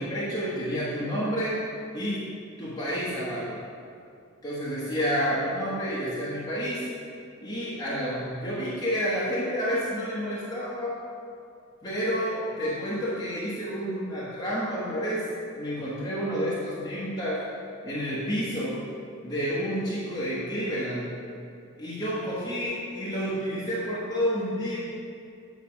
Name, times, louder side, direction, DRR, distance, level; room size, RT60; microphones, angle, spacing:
voice 1, 0.0-1.6 1.9-2.2 2.6-3.6 4.4-6.9 7.4-11.0 11.8-15.3 15.5-17.5 17.8-18.8 19.2-21.1 21.8-24.8, equal, 20° left, -9 dB, 1.2 m, -29 dB
8.3 x 3.3 x 5.8 m, 2.4 s
head